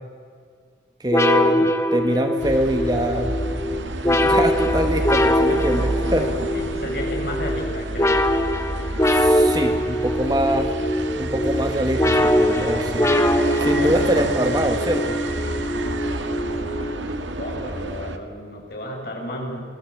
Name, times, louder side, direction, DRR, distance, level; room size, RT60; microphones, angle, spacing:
voice 1, 1.0-3.3 4.0-6.3 9.1-10.7 11.2-13.1 13.6-15.2, right 1 dB, 20° right, 5 dB, 1.8 m, -24 dB
sound 1, 1.1-17.3, left 1 dB, 15° left, 1.3 m, -22 dB
sound 2, 2.4-18.2, right 2 dB, 90° right, 2.1 m, -29 dB
voice 2, 6.3-8.2 13.8-13.9 16.5-19.6, left 1 dB, 55° left, 0 dB, 7.4 m, -33 dB
sound 3, 8.0-17.2, equal, 55° right, 5.5 m, -41 dB
27.5 x 20.0 x 8.7 m, 2.1 s
head